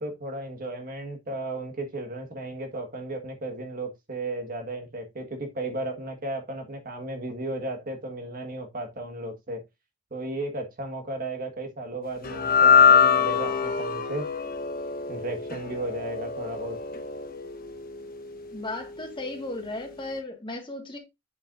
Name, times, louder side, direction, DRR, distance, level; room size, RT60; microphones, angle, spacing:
voice 1, 0.0-9.6 10.1-14.3 15.1-16.8, right 2 dB, 45° right, 1.6 m, -34 dB
sound 1, 12.2-18.6, left 7 dB, 45° left, 1.2 m, -23 dB
voice 2, 18.5-21.0, left 2 dB, 25° left, 1.7 m, -35 dB
7.9 x 7.0 x 2.6 m
head